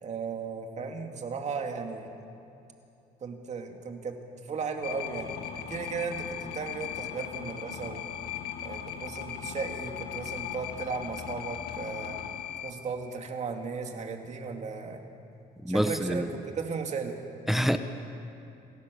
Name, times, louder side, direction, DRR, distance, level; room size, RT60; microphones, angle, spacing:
voice 1, 0.0-2.2 3.2-8.0 8.6-12.2 12.6-15.1 15.7-17.4, right 5 dB, 45° right, 4 dB, 2.5 m, -36 dB
sound 1, 4.8-12.7, left 9 dB, 70° left, 2.1 m, -38 dB
voice 2, 15.6-16.3 17.5-17.8, equal, ahead, 8 dB, 1.0 m, -26 dB
28.0 x 16.0 x 7.0 m, 2.7 s
cardioid pair, 110°, 17 cm